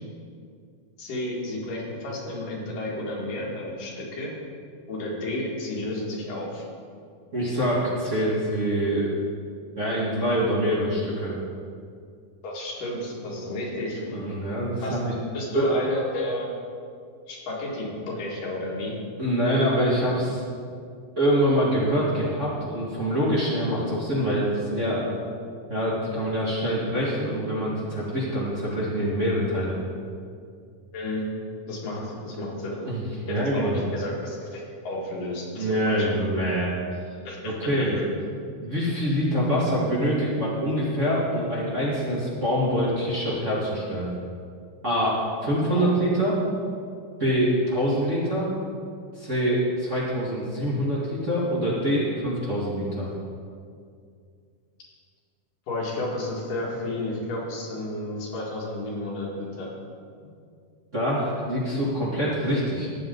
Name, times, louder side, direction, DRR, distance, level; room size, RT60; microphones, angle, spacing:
voice 1, 1.0-4.3 4.9-6.6 12.4-14.0 14.8-15.0 15.3-16.5 17.3-19.0 30.9-31.2 31.7-32.7 33.3-36.1 37.3-37.5 45.7-45.9 55.7-59.7, left 1 dB, 80° left, -4 dB, 3.8 m, -32 dB
voice 2, 7.3-9.1 9.8-11.4 14.1-15.1 15.5-15.6 19.2-20.4 21.2-25.0 25.7-29.8 31.9-32.0 32.7-33.7 35.5-36.7 37.4-38.0 38.6-44.1 44.8-46.4 47.2-48.5 49.2-53.1 60.9-62.9, equal, 30° right, -8 dB, 1.7 m, -25 dB
14.5 x 9.4 x 3.9 m, 2.3 s
omnidirectional pair, 3.7 m